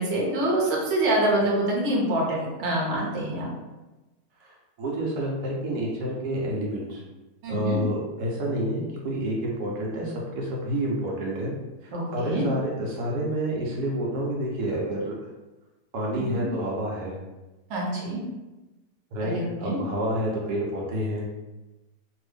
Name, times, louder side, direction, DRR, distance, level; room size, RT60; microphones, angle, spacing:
voice 1, 0.0-3.5 7.4-7.8 11.9-12.4 16.3-16.4 17.7-18.2 19.2-19.8, right 1 dB, 55° right, -3 dB, 1.0 m, -26 dB
voice 2, 4.4-7.0 7.5-11.5 11.8-15.1 15.9-17.2 19.1-21.2, right 1 dB, 75° right, -2 dB, 1.2 m, -29 dB
2.7 x 2.5 x 3.4 m, 1.1 s
omnidirectional pair, 1.7 m